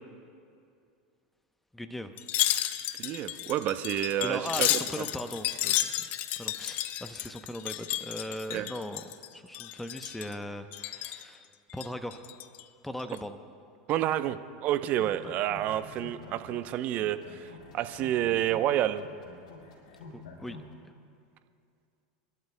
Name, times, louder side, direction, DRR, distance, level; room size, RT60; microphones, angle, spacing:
voice 1, 1.7-2.1 4.2-6.1 6.4-9.0 9.3-11.5 11.7-12.3 12.8-13.4 20.1-20.6, left 1 dB, 5° left, 8 dB, 0.8 m, -39 dB
Wind chime, 2.2-9.3 9.5-10.4 10.7-11.3 11.7-12.6 13.0-13.2, left 13 dB, 50° left, 0.6 m, -32 dB
voice 2, 3.0-4.7 5.0-5.1 8.5-8.7 13.9-19.0, right 12 dB, 45° right, 11 dB, 0.7 m, -29 dB
sound 1, 14.9-16.7 17.0-20.7, left 4 dB, 80° left, 4.1 m, -48 dB
29.5 x 12.0 x 2.2 m, 2.4 s
hypercardioid pair, 100°, 4 cm